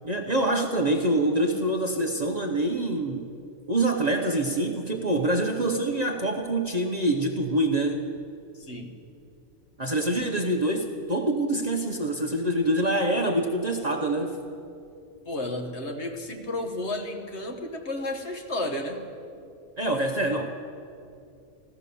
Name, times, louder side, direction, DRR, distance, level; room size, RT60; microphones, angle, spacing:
voice 1, 0.0-3.3 3.7-8.1 9.8-14.4 19.8-20.5, right 1 dB, 35° right, 1 dB, 0.9 m, -25 dB
voice 2, 8.6-8.9 15.3-19.0, left 1 dB, 50° left, 3 dB, 1.5 m, -32 dB
16.0 x 13.0 x 6.9 m, 2.6 s
omnidirectional pair, 1.5 m